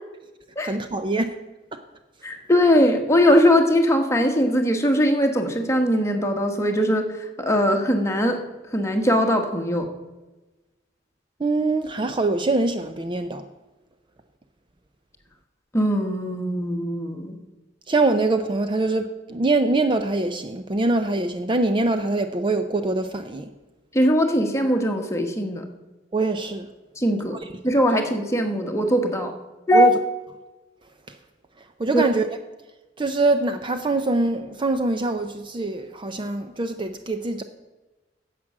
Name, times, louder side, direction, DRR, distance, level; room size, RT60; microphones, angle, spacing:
voice 1, 0.6-1.4 1.7-1.8 11.4-13.5 17.9-23.5 26.1-26.7 29.7-29.9 31.8-32.3 33.0-37.4, right 2 dB, 25° right, 0.5 m, -23 dB
voice 2, 2.2-8.4 8.7-9.9 15.7-17.3 23.9-25.6 27.0-29.3 29.7-29.9 31.9-32.0, equal, 15° left, 1.3 m, -20 dB
10.5 x 7.6 x 7.3 m
head